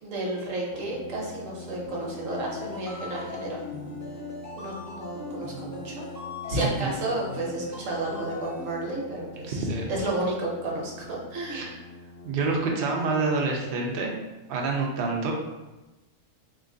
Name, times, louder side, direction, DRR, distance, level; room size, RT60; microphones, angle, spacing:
voice 1, 0.0-3.6 4.6-6.0 6.5-9.6 9.9-11.8, right 2 dB, 85° right, -3 dB, 1.2 m, -32 dB
Brass instrument, 0.7-13.0, left 2 dB, 60° left, 0.4 m, -45 dB
sound 1, 1.9-8.7, left 3 dB, 15° left, 0.7 m, -39 dB
voice 2, 6.5-6.9 9.5-9.8 11.5-11.7 12.2-14.1 14.5-15.3, right 3 dB, 55° right, 0 dB, 0.6 m, -27 dB
2.9 x 2.5 x 3.7 m, 1.1 s
omnidirectional pair, 1.3 m